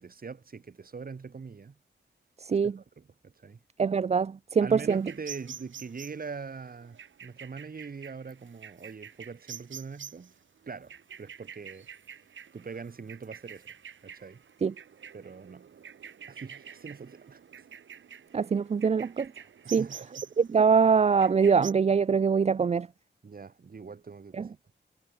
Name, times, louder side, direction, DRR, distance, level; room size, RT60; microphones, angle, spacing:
voice 1, 0.0-1.8 2.5-3.6 4.6-10.4 10.7-11.9 12.5-13.7 14.0-14.4 15.1-15.7 16.3-17.4 19.6-20.2 23.2-24.8, right 5 dB, 50° right, 6.9 m, -42 dB
voice 2, 2.4-2.7 3.8-5.1 14.6-14.7 18.3-19.3 19.7-19.9 20.4-22.9 24.3-24.5, right 6 dB, 35° right, 0.4 m, -23 dB
sound 1, 4.8-21.7, right 7 dB, 85° right, 7.9 m, -47 dB
wide cardioid pair, 125°, 19 cm